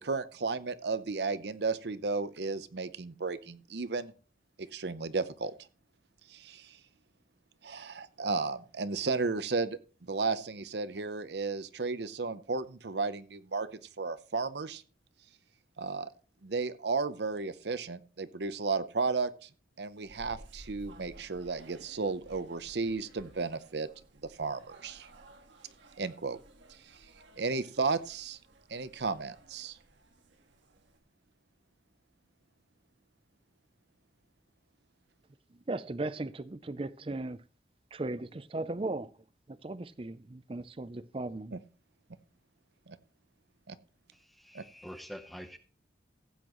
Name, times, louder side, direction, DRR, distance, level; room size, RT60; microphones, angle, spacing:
voice 1, 0.0-4.1 4.7-5.5 6.3-6.8 7.6-13.7 14.0-14.8 15.8-16.1 16.4-19.5 19.8-23.9 24.4-25.1 26.0-26.4 27.4-28.4 28.7-29.8 41.5-41.6 42.9-43.0 43.7-43.8 44.5-44.6, right 4 dB, 70° right, 0.7 m, -34 dB
sound 1, 19.8-31.0, right 1 dB, 90° right, 1.6 m, -56 dB
voice 2, 35.5-37.4 37.9-39.1 39.5-41.6, right 2 dB, 30° right, 0.5 m, -37 dB
voice 3, 44.1-45.6, equal, ahead, 0.7 m, -46 dB
15.5 x 8.5 x 3.1 m
head